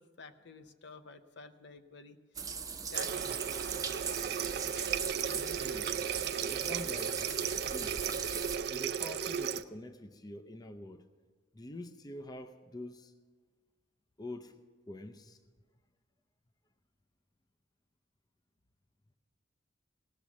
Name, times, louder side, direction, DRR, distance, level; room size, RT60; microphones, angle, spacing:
voice 1, 0.0-2.2 2.9-3.6, left 3 dB, 70° left, 0.7 m, -50 dB
sound 1, 2.3-8.6, right 6 dB, 20° right, 0.7 m, -40 dB
Water tap faucet, 2.9-9.6, right 8 dB, 60° right, 0.4 m, -35 dB
voice 2, 5.3-6.0 6.5-7.3 7.7-8.2 8.7-11.0 11.5-13.1 14.2-14.6 14.9-15.4, left 1 dB, 20° left, 0.5 m, -46 dB
18.0 x 6.2 x 7.0 m
head